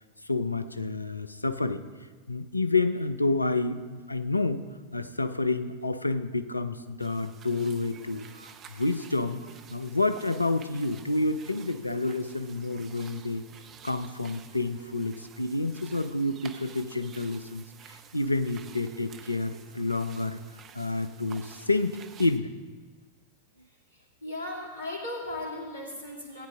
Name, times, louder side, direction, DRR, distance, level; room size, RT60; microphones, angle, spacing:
voice 1, 0.2-1.8 2.3-4.6 4.9-13.4 13.8-20.4 20.7-22.5, left 2 dB, 85° left, 11 dB, 0.5 m, -29 dB
sound 1, 7.0-22.4, right 7 dB, 30° right, 0.7 m, -51 dB
voice 2, 23.9-26.5, left 1 dB, 85° right, -2 dB, 2.5 m, -37 dB
15.5 x 9.4 x 3.7 m, 1.4 s
figure-of-eight pair, 90°, 0 cm